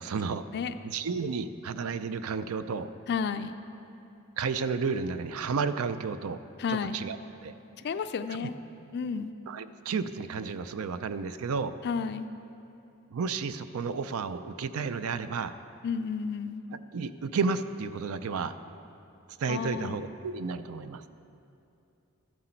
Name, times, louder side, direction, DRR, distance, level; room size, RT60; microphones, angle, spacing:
voice 1, 0.0-0.4 0.8-2.9 4.4-6.4 6.7-7.2 7.4-7.5 9.5-11.8 13.1-15.5 16.9-18.6 19.4-21.0, right 5 dB, 70° right, 12 dB, 0.4 m, -32 dB
voice 2, 3.1-3.6 6.6-7.0 7.8-8.5 8.9-9.3 11.8-12.3 15.8-16.7 19.5-20.0, left 6 dB, 50° left, 10 dB, 0.3 m, -32 dB
13.5 x 7.8 x 4.4 m, 2.7 s
head